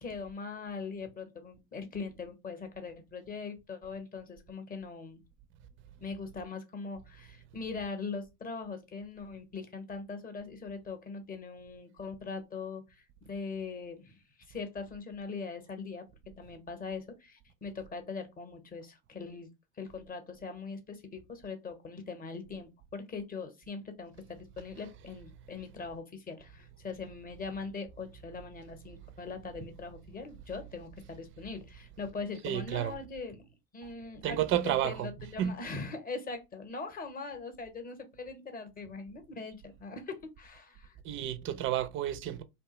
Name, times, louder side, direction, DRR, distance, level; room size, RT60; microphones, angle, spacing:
voice 1, 0.0-5.2 6.0-16.1 16.4-19.5 19.8-41.0, left 4 dB, 20° left, 0.8 m, -41 dB
voice 2, 32.4-33.0 34.2-35.6 41.0-42.4, right 11 dB, 30° right, 0.4 m, -31 dB
2.8 x 2.2 x 2.9 m
hypercardioid pair, 85°, 45 cm